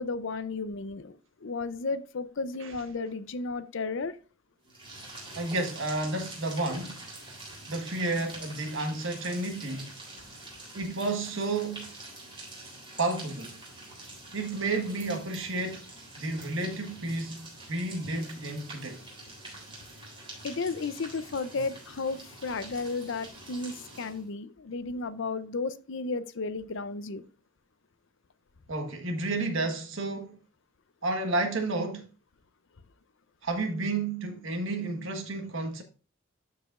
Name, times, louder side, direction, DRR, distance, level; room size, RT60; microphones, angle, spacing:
voice 1, 0.0-4.2 20.4-27.3, left 3 dB, 60° left, 0.6 m, -33 dB
sound 1, 4.6-24.3, right 2 dB, 25° right, 3.5 m, -46 dB
voice 2, 5.3-7.0 7.7-10.0 10.7-11.9 13.0-13.6 14.3-15.8 16.2-19.0 28.7-30.4 31.0-32.1 33.4-35.8, right 2 dB, 65° right, 1.5 m, -31 dB
12.5 x 4.9 x 2.5 m
head